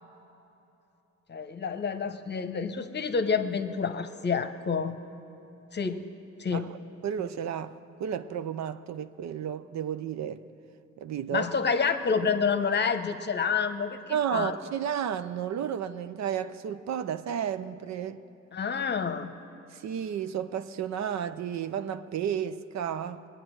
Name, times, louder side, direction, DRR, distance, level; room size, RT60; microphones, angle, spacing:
voice 1, 1.3-4.9 5.7-6.0 6.4-6.7 11.3-14.0 14.3-14.6 18.5-19.3, left 5 dB, 35° left, 0.9 m, -28 dB
voice 2, 7.0-10.4 11.0-11.5 14.1-18.2 19.7-23.3, right 9 dB, 65° right, 0.6 m, -32 dB
21.5 x 9.3 x 6.3 m
cardioid pair, 90°, 30 cm